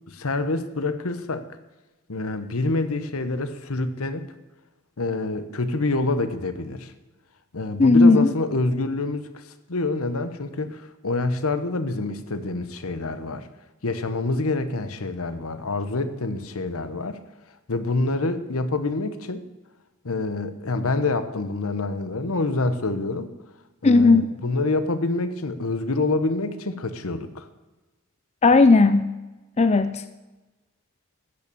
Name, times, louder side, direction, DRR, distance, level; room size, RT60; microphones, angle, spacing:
voice 1, 0.1-1.5 2.1-4.2 5.0-6.9 7.5-9.4 9.7-13.5 13.8-17.2 17.7-19.4 20.0-23.3 23.8-27.5, left 2 dB, 75° left, 11 dB, 1.0 m, -26 dB
voice 2, 7.8-8.3 23.8-24.2 28.4-29.1 29.6-30.0, left 3 dB, 30° left, 12 dB, 0.4 m, -15 dB
13.0 x 8.5 x 6.9 m, 1.1 s
head